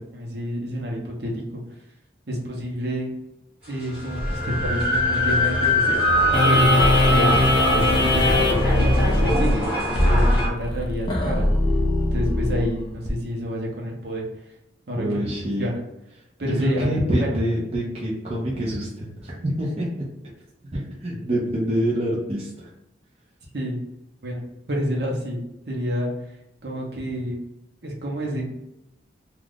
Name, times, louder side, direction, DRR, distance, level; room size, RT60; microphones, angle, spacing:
voice 1, 0.0-1.6 2.3-3.1 3.7-6.0 6.4-9.7 10.0-11.5 12.1-14.3 14.9-15.2 15.6-15.7 16.4-17.3 23.5-23.8 24.2-24.4 24.7-26.1 26.6-27.4 27.8-28.4, equal, 65° right, -2 dB, 0.8 m, -29 dB
sound 1, 3.9-10.5, equal, 10° right, 1.3 m, -23 dB
sound 2, 6.3-13.1, left 2 dB, 25° left, 0.5 m, -20 dB
voice 2, 15.0-15.7 16.6-20.1 20.7-22.7, equal, 35° right, -5 dB, 0.6 m, -26 dB
2.5 x 2.3 x 3.4 m, 0.89 s
head